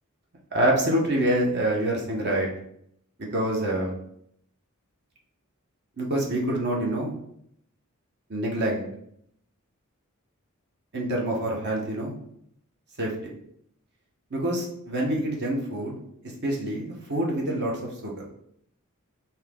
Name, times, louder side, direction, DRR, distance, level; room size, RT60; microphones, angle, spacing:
voice 1, 0.5-2.5 3.2-4.0 6.0-7.1 8.3-8.8 10.9-12.1 13.0-13.1 14.3-16.0 16.4-17.7 18.0-18.2, right 1 dB, 50° right, -2 dB, 0.9 m, -26 dB
4.1 x 2.8 x 3.6 m, 0.70 s
head